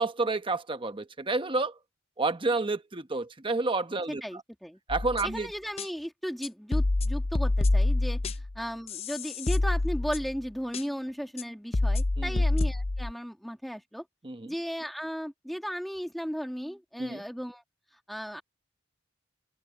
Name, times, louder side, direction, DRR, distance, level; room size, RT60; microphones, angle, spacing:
voice 1, 0.0-1.7 2.2-4.2 4.9-5.5 12.2-12.3 14.2-14.5 17.0-17.2, right 3 dB, 25° right, 0.9 m, -29 dB
voice 2, 4.1-4.8 5.2-14.0 14.4-17.6 18.1-18.4, equal, ahead, 1.6 m, -36 dB
sound 1, 4.9-5.4 5.8-5.9 6.4-8.6 8.9-10.4 10.7-10.8 11.4-11.5 11.7-13.1, left 2 dB, 30° left, 0.5 m, -27 dB
head